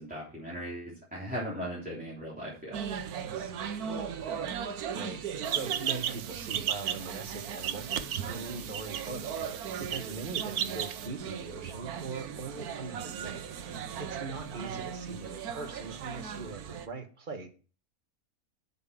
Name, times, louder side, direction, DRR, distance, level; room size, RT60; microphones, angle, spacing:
voice 1, 0.0-2.8, equal, 5° right, -6 dB, 3.4 m, -38 dB
sound 1, 2.7-16.9, right 7 dB, 85° right, 1.3 m, -38 dB
voice 2, 4.9-5.2 5.5-9.5 9.8-17.5, right 3 dB, 35° right, 5 dB, 1.4 m, -41 dB
sound 2, 5.4-11.1, right 9 dB, 65° right, 1.1 m, -35 dB
8.0 x 5.7 x 7.3 m, 0.38 s
omnidirectional pair, 1.5 m